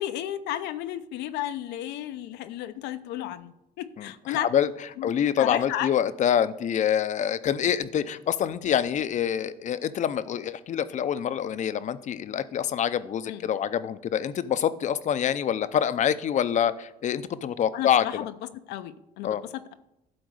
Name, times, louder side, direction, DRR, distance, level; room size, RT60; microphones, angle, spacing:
voice 1, 0.0-4.5 5.0-5.1 5.4-5.9 13.3-13.5 17.7-18.3 18.7-19.7, left 12 dB, 85° left, 11 dB, 0.7 m, -33 dB
voice 2, 4.0-4.7 5.0-18.0 19.2-19.4, left 9 dB, 45° left, 13 dB, 0.6 m, -26 dB
12.0 x 4.4 x 6.4 m, 0.84 s
cardioid pair, 110°, 17 cm